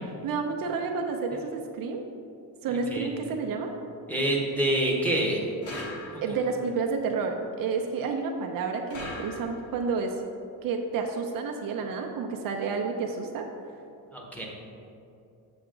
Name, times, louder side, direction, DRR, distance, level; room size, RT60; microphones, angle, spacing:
voice 1, 0.2-2.0 2.6-3.7 6.2-10.2 10.6-13.5, right 4 dB, 55° right, 3 dB, 0.6 m, -30 dB
voice 2, 4.1-5.4 6.3-6.4 14.1-14.5, right 1 dB, 5° left, -3 dB, 1.0 m, -26 dB
sound 1, 5.6-6.5 8.9-9.8, left 1 dB, 35° left, 1.3 m, -39 dB
7.1 x 5.8 x 3.7 m, 2.6 s
cardioid pair, 145°, 40 cm